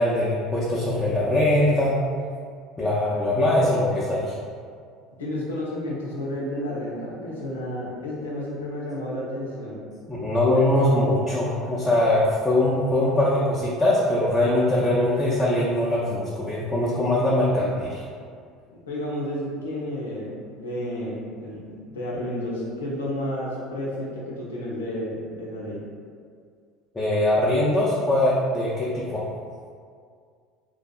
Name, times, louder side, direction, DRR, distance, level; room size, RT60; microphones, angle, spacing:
voice 1, 0.0-2.0 2.8-4.3 10.1-18.0 26.9-29.2, left 1 dB, 15° left, -8 dB, 0.5 m, -22 dB
voice 2, 5.2-9.8 18.7-25.8, left 1 dB, 75° left, -5 dB, 0.5 m, -31 dB
2.6 x 2.3 x 2.3 m, 2.1 s
figure-of-eight pair, 65°, 0 cm